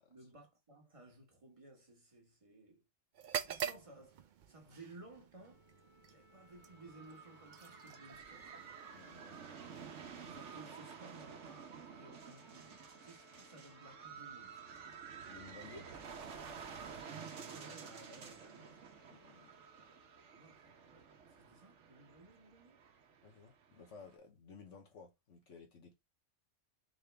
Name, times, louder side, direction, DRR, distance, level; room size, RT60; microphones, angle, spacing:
voice 1, 0.1-2.8 3.4-5.6 6.0-8.7 10.2-14.7 17.5-18.8 20.4-22.8, right 2 dB, 30° right, 1.3 m, -58 dB
sound 1, 3.1-11.0, right 8 dB, 55° right, 0.5 m, -47 dB
sound 2, 5.3-21.1, left 4 dB, 40° left, 1.1 m, -66 dB
sound 3, 6.5-24.2, right 6 dB, 75° right, 1.1 m, -52 dB
voice 2, 8.9-9.4 15.3-15.9 19.1-19.5 23.2-25.9, left 4 dB, 80° left, 1.4 m, -56 dB
3.9 x 3.6 x 3.3 m
omnidirectional pair, 1.2 m